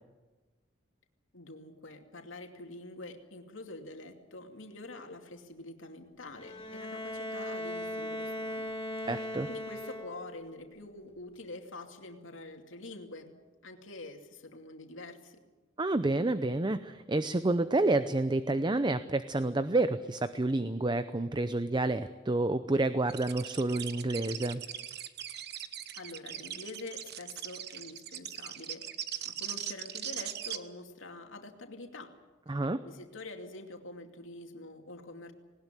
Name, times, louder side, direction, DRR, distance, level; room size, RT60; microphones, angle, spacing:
voice 1, 1.3-8.7 9.0-9.2 9.5-13.3 13.6-15.4 25.9-28.9 29.2-32.2 32.5-35.3, left 2 dB, 80° left, 4 dB, 2.6 m, -46 dB
Bowed string instrument, 6.3-10.5, left 1 dB, 30° left, 1.9 m, -38 dB
voice 2, 9.1-9.5 15.8-24.6 32.5-32.8, right 2 dB, 25° right, 12 dB, 0.6 m, -29 dB
sound 1, 23.1-30.6, right 10 dB, 55° right, 1.2 m, -40 dB
19.5 x 19.5 x 9.2 m, 1.2 s
head